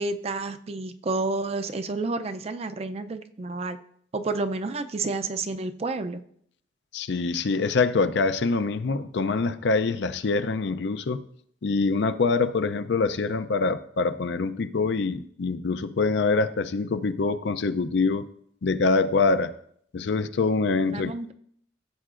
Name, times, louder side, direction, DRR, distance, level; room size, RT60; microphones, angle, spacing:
voice 1, 0.0-3.8 4.1-6.2 20.8-21.3, right 3 dB, 35° right, 9 dB, 0.4 m, -30 dB
voice 2, 6.9-11.2 11.6-18.3 18.6-19.5 19.9-21.1, left 4 dB, 70° left, 12 dB, 0.5 m, -25 dB
15.5 x 7.5 x 2.5 m, 0.65 s
head